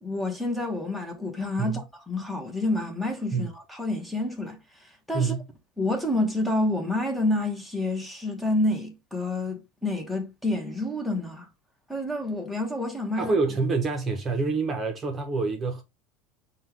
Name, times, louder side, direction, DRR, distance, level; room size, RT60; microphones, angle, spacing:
voice 1, 0.0-5.3 5.8-11.5 11.9-13.3, left 2 dB, 5° left, 1.3 m, -28 dB
voice 2, 5.1-5.4 13.1-15.8, right 4 dB, 30° right, 0.9 m, -27 dB
5.4 x 2.4 x 3.4 m
supercardioid pair, 115°, 0 cm